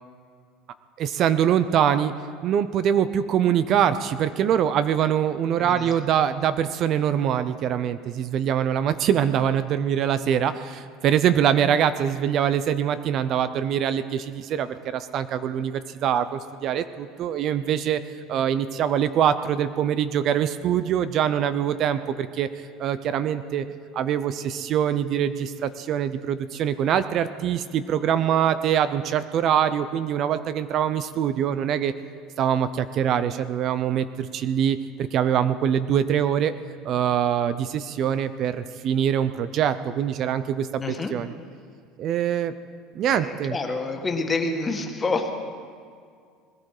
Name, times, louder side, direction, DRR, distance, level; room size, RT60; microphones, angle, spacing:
voice 1, 1.0-2.1 2.4-18.0 18.3-22.5 22.8-23.7 23.9-31.9 32.4-36.5 36.8-41.3 42.0-42.5 42.9-43.5, right 9 dB, 50° right, 12 dB, 0.7 m, -24 dB
voice 2, 5.6-5.9 40.8-41.1 43.1-45.3, left 3 dB, 20° left, 4 dB, 1.9 m, -28 dB
21.0 x 12.5 x 5.0 m, 2.1 s
supercardioid pair, 115°, 0 cm